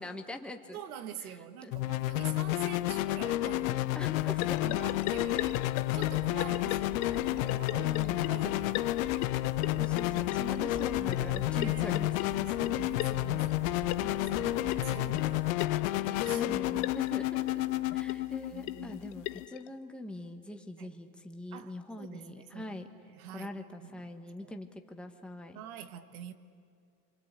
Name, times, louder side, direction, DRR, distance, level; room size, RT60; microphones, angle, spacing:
voice 1, 0.0-0.8 1.2-1.3 1.6-1.7 3.9-4.8 5.1-5.2 6.3-6.5 7.8-8.3 9.8-12.5 16.2-22.9 23.3-25.6, left 1 dB, ahead, 4 dB, 1.5 m, -43 dB
voice 2, 0.7-3.9 4.4-5.6 5.9-9.4 11.5-11.9 12.4-16.9 18.5-19.0 20.8-21.0 21.5-22.8 23.1-24.1 24.4-24.5 25.5-26.3, right 9 dB, 80° right, 8 dB, 1.8 m, -46 dB
sound 1, 1.7-19.5, left 16 dB, 70° left, 0.9 m, -31 dB
sound 2, 4.2-15.5, right 3 dB, 50° right, 2.9 m, -47 dB
sound 3, 4.4-19.7, left 18 dB, 45° left, 0.6 m, -40 dB
26.0 x 24.5 x 8.4 m, 2.3 s
supercardioid pair, 120°, 43 cm